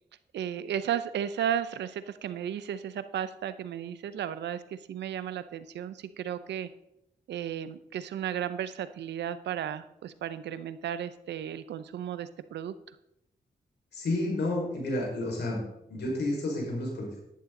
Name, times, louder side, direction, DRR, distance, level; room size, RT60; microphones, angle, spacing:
voice 1, 0.3-6.7 7.3-12.7, right 9 dB, 90° right, 14 dB, 0.7 m, -34 dB
voice 2, 13.9-15.6 15.9-17.2, left 1 dB, 80° left, -2 dB, 4.9 m, -30 dB
11.5 x 11.5 x 3.8 m, 0.80 s
cardioid pair, 55°, 17 cm